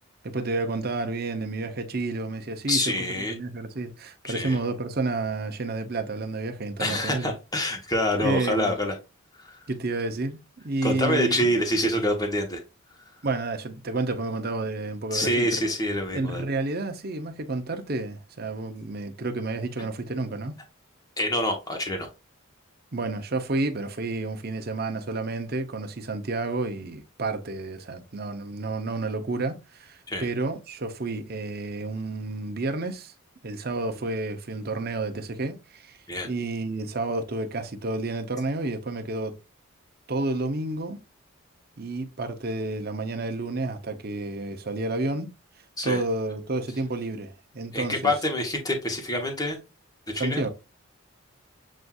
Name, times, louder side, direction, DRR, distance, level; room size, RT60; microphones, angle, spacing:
voice 1, 0.2-7.3 8.2-8.8 9.7-11.5 13.2-15.5 16.1-20.6 22.9-33.1 33.4-36.0 36.2-39.3 40.1-41.0 41.8-45.3 45.8-48.1 50.2-50.5, right 2 dB, 45° right, 0.7 m, -30 dB
voice 2, 2.7-3.3 4.2-4.6 6.8-8.9 9.4-9.6 10.8-12.6 15.1-16.5 21.2-22.1 30.1-30.3 36.1-36.3 45.8-46.0 47.7-49.6 50.1-50.4, left 1 dB, 20° left, 1.0 m, -26 dB
7.4 x 2.6 x 2.3 m
head